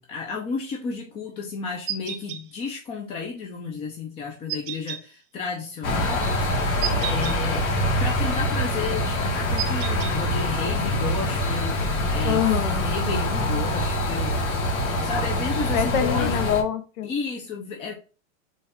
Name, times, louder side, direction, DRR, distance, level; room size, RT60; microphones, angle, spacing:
voice 1, 0.0-6.7 7.0-7.7 8.0-12.5 12.8-14.5 15.0-16.4 17.0-17.9, left 5 dB, 15° left, 0.3 m, -32 dB
sound 1, 1.9-2.4 4.5-5.0 6.8-7.4 9.6-10.1, right 11 dB, 40° right, 0.5 m, -31 dB
sound 2, 5.8-16.6, left 1 dB, 60° left, 1.5 m, -25 dB
voice 2, 12.3-12.9 15.7-17.1, left 9 dB, 75° left, 0.7 m, -25 dB
4.0 x 2.4 x 3.5 m
hypercardioid pair, 125°, 40 cm